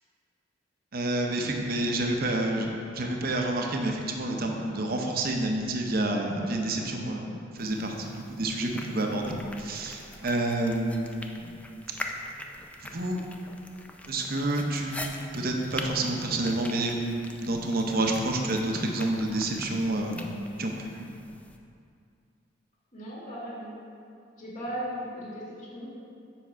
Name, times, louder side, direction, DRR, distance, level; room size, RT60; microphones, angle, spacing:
voice 1, 0.9-11.5 12.9-13.2 14.1-17.0 17.3-20.2 20.6-21.3, right 1 dB, 50° right, 1 dB, 0.8 m, -29 dB
sound 1, 7.6-21.6, left 1 dB, 5° left, 0.4 m, -43 dB
voice 2, 22.9-23.7 24.4-25.9, equal, 40° left, -6 dB, 2.0 m, -37 dB
7.3 x 5.9 x 4.5 m, 2.5 s
head